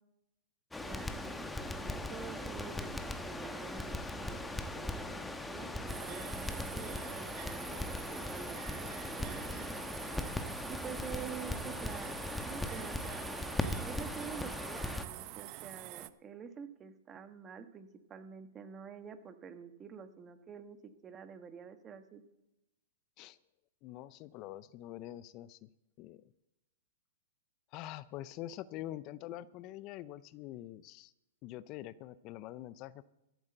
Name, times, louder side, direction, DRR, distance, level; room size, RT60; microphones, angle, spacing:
Crackle, 0.7-15.0, left 2 dB, 5° left, 1.1 m, -39 dB
voice 1, 0.9-4.4 4.7-9.9 10.7-13.3 13.8-22.2, right 7 dB, 25° right, 10 dB, 1.3 m, -48 dB
sound 1, 5.9-16.1, right 17 dB, 45° right, 0.7 m, -47 dB
voice 2, 23.8-25.7 26.0-26.2 27.7-31.1 31.4-33.0, left 14 dB, 40° left, 17 dB, 0.5 m, -45 dB
14.0 x 7.9 x 7.8 m, 0.92 s
hypercardioid pair, 120°, 0 cm